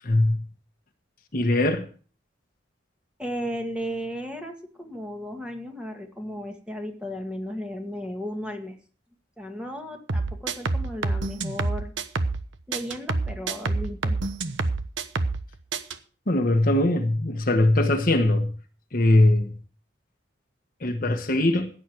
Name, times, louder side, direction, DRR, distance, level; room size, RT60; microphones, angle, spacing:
voice 1, 0.0-0.4 1.3-1.9 16.3-18.5 18.9-19.6 20.8-21.7, left 1 dB, 45° left, 1.2 m, -21 dB
voice 2, 3.2-8.8 9.4-11.9 12.7-14.2, equal, 5° right, 1.8 m, -35 dB
sound 1, 10.1-12.4 12.7-15.4 15.7-16.0, right 3 dB, 75° right, 1.1 m, -27 dB
15.5 x 9.1 x 4.6 m
head